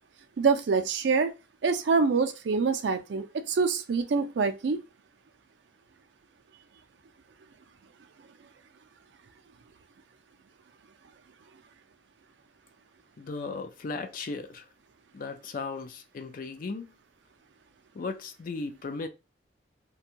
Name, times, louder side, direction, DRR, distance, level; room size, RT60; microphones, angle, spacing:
voice 1, 0.4-1.3 1.6-4.8, right 4 dB, 65° right, 0.4 m, -25 dB
voice 2, 13.2-14.6 15.1-16.9 17.9-19.1, left 4 dB, 50° left, 0.4 m, -36 dB
2.5 x 2.2 x 2.8 m
head